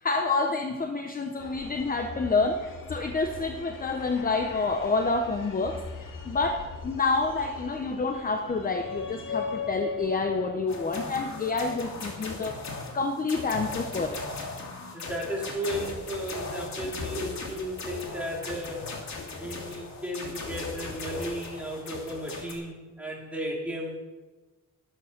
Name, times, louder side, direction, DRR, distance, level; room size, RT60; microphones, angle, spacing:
voice 1, 0.0-12.6 12.9-14.2, left 3 dB, 25° left, 5 dB, 0.8 m, -28 dB
sound 1, 1.4-12.9, left 5 dB, 90° left, 2.2 m, -40 dB
sound 2, 10.7-22.5, left 3 dB, 60° left, 2.7 m, -38 dB
voice 2, 14.9-19.0 19.4-24.0, equal, 5° right, -3 dB, 3.5 m, -34 dB
13.0 x 12.5 x 5.9 m, 1.2 s
wide cardioid pair, 160°, 32 cm